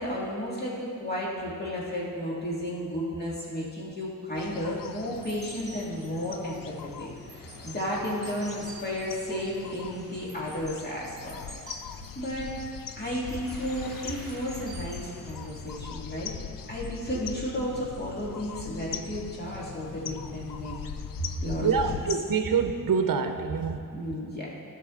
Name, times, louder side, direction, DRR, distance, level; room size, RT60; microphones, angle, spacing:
voice 1, 0.0-11.4 12.2-12.5 12.9-16.3 16.7-20.8 21.2-22.0 23.9-24.5, equal, 30° left, -5 dB, 2.1 m, -33 dB
sound 1, 4.3-22.2, left 8 dB, 80° left, 0.5 m, -41 dB
sound 2, 5.1-15.9, right 1 dB, ahead, 1.9 m, -48 dB
voice 2, 21.6-23.8, right 6 dB, 75° right, 6 dB, 0.7 m, -26 dB
15.5 x 6.0 x 3.7 m, 2.4 s
wide cardioid pair, 150°, 33 cm